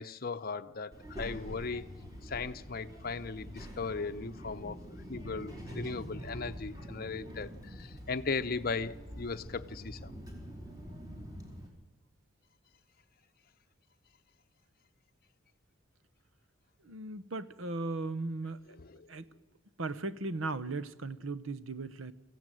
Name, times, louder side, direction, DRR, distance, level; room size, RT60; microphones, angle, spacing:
voice 1, 0.0-1.9 2.2-4.8 5.1-10.1 19.0-19.1, left 4 dB, 45° left, 0.7 m, -37 dB
Child speech kid speaking, 0.9-11.7, equal, 15° right, 4.2 m, -45 dB
voice 2, 16.8-18.6 19.1-19.3 19.8-22.1, right 3 dB, 70° right, 1.0 m, -37 dB
25.0 x 15.5 x 9.1 m
head